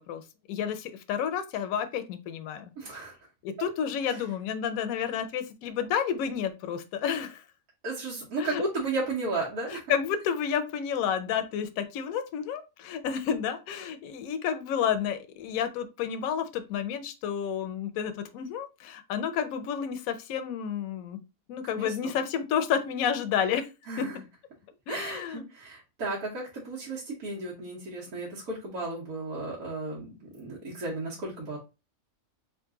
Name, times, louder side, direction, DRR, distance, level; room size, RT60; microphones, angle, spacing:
voice 1, 0.5-2.7 3.4-7.4 8.4-8.7 9.7-21.2 21.5-23.6 24.0-24.1 24.9-25.4, left 8 dB, 75° left, 9 dB, 1.0 m, -30 dB
voice 2, 2.8-3.1 3.6-3.7 4.1-4.2 7.8-9.8 21.8-22.1 23.9-24.2 24.9-31.6, right 3 dB, 90° right, -5 dB, 1.6 m, -34 dB
3.9 x 2.5 x 3.6 m, 0.28 s
omnidirectional pair, 1.5 m